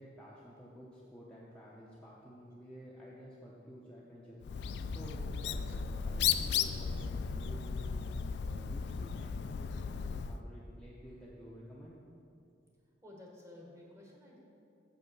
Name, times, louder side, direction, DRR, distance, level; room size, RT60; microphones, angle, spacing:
voice 1, 0.0-12.0 12.3-12.4, equal, 5° left, -6 dB, 0.7 m, -52 dB
Bird, 4.4-10.4, left 7 dB, 65° left, 0.3 m, -35 dB
voice 2, 13.0-14.4, left 1 dB, 15° right, -2 dB, 1.3 m, -53 dB
7.2 x 5.4 x 6.0 m, 2.5 s
head